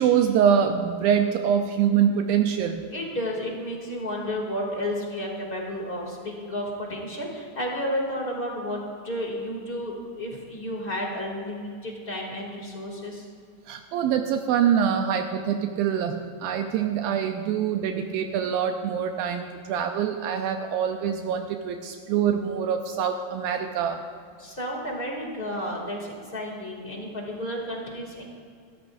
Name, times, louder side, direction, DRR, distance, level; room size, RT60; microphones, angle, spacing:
voice 1, 0.0-2.9 13.7-24.0, right 8 dB, 80° right, 5 dB, 2.4 m, -24 dB
voice 2, 2.9-13.3 24.4-28.2, equal, 15° left, -2 dB, 2.3 m, -32 dB
27.0 x 13.5 x 2.7 m, 2.2 s
omnidirectional pair, 4.3 m